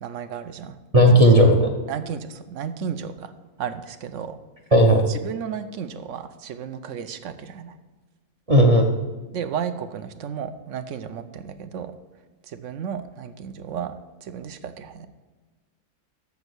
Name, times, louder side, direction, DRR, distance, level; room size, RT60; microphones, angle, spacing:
voice 1, 0.0-0.7 1.9-3.3 3.6-4.4 5.1-7.8 9.3-11.9 12.5-13.9 14.2-15.1, right 7 dB, 60° right, 11 dB, 0.9 m, -33 dB
voice 2, 0.9-1.7 4.7-5.0 8.5-8.9, equal, 35° right, 3 dB, 0.6 m, -14 dB
7.1 x 6.9 x 7.9 m, 1.3 s
omnidirectional pair, 1.6 m